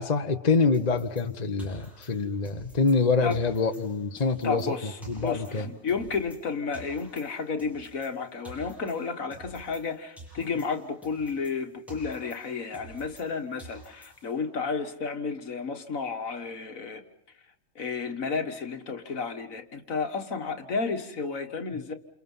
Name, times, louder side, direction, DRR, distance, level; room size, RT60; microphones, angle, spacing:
voice 1, 0.0-4.7 5.1-5.7, left 4 dB, 30° left, 7 dB, 1.2 m, -25 dB
sound 1, 0.7-3.0 3.3-6.5 6.7-9.9 10.2-13.3 13.6-14.4, right 2 dB, ahead, 8.0 m, -49 dB
voice 2, 4.4-17.0 17.8-21.9, left 5 dB, 70° left, 7 dB, 2.0 m, -32 dB
28.5 x 28.5 x 5.6 m, 0.72 s
omnidirectional pair, 1.5 m